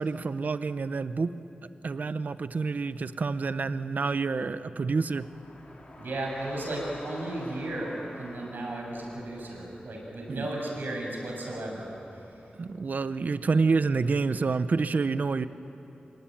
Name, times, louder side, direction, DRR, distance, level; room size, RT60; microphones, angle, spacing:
voice 1, 0.0-1.3 1.8-5.3 10.3-10.4 12.6-15.5, right 4 dB, 60° right, 12 dB, 0.8 m, -28 dB
sound 1, 5.1-14.1, left 1 dB, 50° left, 6.2 m, -50 dB
voice 2, 6.0-12.5, right 1 dB, 85° right, -1 dB, 7.3 m, -35 dB
27.0 x 23.5 x 9.2 m, 2.9 s
wide cardioid pair, 115°, 3 cm